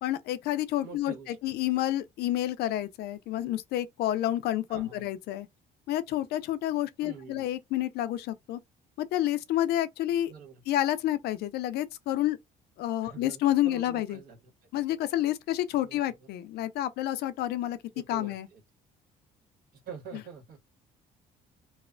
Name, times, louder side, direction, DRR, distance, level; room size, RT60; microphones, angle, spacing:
voice 1, 0.0-5.5 5.9-8.6 9.0-10.3 10.7-12.4 12.8-14.2 14.7-17.8 18.1-18.5, left 13 dB, 75° left, 0.4 m, -29 dB
voice 2, 0.8-1.4 4.7-5.0 7.0-7.4 10.3-10.6 13.0-14.5 15.8-16.3 17.9-18.6 19.8-20.6, right 6 dB, 65° right, 1.4 m, -46 dB
3.1 x 2.0 x 2.4 m
cardioid pair, 110°, 17 cm